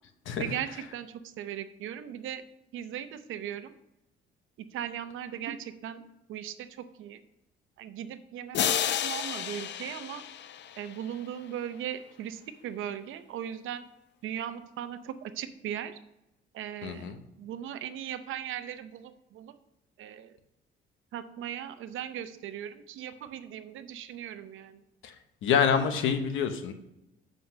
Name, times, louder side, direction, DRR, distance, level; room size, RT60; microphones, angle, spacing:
voice 1, 0.4-2.4 2.7-3.7 4.7-6.0 6.3-7.2 7.8-10.2 10.8-13.9 14.2-16.0 16.5-17.1 17.4-19.6 20.0-20.3 21.1-24.8, right 10 dB, 85° right, 11 dB, 0.7 m, -38 dB
sound 1, 8.5-11.2, left 10 dB, 65° left, 0.6 m, -31 dB
voice 2, 16.8-17.2 25.0-25.1 25.4-26.7, left 7 dB, 85° left, 8 dB, 1.0 m, -26 dB
7.8 x 5.4 x 5.3 m, 0.88 s
cardioid pair, 90°, 20 cm